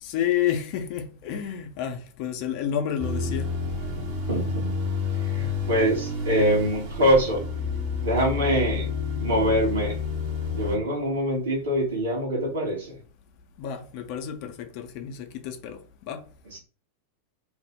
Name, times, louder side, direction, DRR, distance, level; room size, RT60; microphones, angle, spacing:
voice 1, 0.0-3.5 13.6-15.8 16.1-16.2, left 9 dB, 45° left, 0.5 m, -30 dB
sound 1, 3.0-10.7, left 4 dB, 45° right, 0.8 m, -29 dB
voice 2, 4.3-4.7 5.2-7.4 8.0-8.9 9.2-10.0 10.5-13.0 16.5-16.6, equal, 65° right, 1.2 m, -24 dB
2.6 x 2.0 x 3.6 m
figure-of-eight pair, 90°, 0 cm